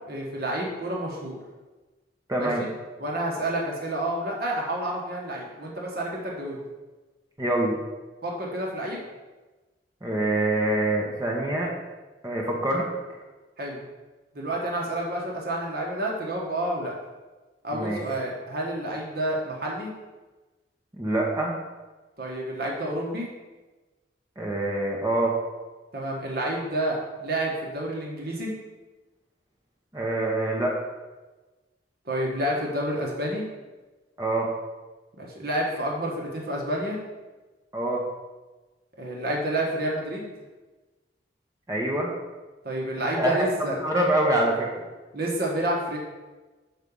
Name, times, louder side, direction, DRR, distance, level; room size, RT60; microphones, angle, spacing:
voice 1, 0.0-1.4 2.4-2.7 3.0-6.7 8.2-9.0 13.6-13.8 14.3-16.9 17.6-19.9 22.2-23.3 25.9-28.5 32.0-33.4 35.2-37.0 39.0-40.3 42.6-43.8 45.1-46.0, right 1 dB, 60° right, -2 dB, 1.3 m, -29 dB
voice 2, 2.3-2.6 7.4-7.7 10.0-11.7 12.2-12.8 17.7-18.0 20.9-21.5 24.4-25.3 29.9-30.8 34.2-34.5 37.7-38.0 41.7-42.1 43.0-44.7, right 1 dB, 20° right, -2 dB, 1.0 m, -25 dB
6.4 x 4.8 x 5.5 m, 1.2 s
head